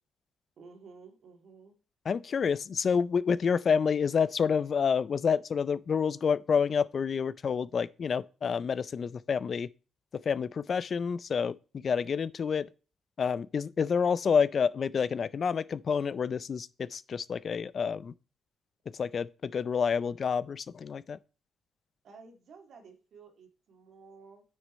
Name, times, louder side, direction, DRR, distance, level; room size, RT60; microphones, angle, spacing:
voice 1, 0.6-1.7 22.0-24.4, right 4 dB, 65° right, 2.1 m, -53 dB
voice 2, 2.1-9.7 10.3-12.7 13.2-18.1 19.0-21.2, left 6 dB, 45° left, 0.4 m, -28 dB
9.5 x 6.4 x 4.2 m
cardioid pair, 110°, 0 cm